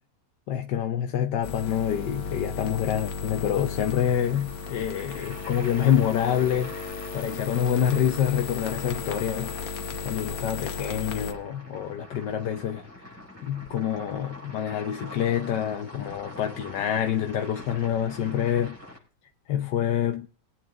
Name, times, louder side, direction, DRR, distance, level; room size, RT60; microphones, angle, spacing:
voice 1, 0.5-9.8 10.0-18.8 19.5-20.3, left 9 dB, 85° left, 1.4 m, -27 dB
sound 1, 1.4-11.3, left 5 dB, 65° left, 1.5 m, -35 dB
sound 2, 3.8-19.0, left 1 dB, 10° right, 5.9 m, -45 dB
23.0 x 8.8 x 2.5 m
omnidirectional pair, 1.8 m